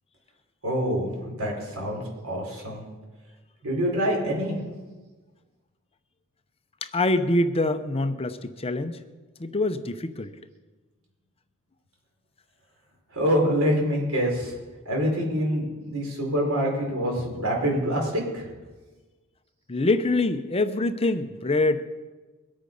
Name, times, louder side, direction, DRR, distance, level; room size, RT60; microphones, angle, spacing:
voice 1, 0.6-2.8 3.6-4.6 13.1-14.5 14.8-18.5, equal, 75° right, -1 dB, 4.9 m, -26 dB
voice 2, 6.8-9.0 9.4-10.3 19.7-21.8, left 2 dB, 25° left, 10 dB, 0.7 m, -25 dB
22.5 x 8.8 x 5.4 m, 1.3 s
head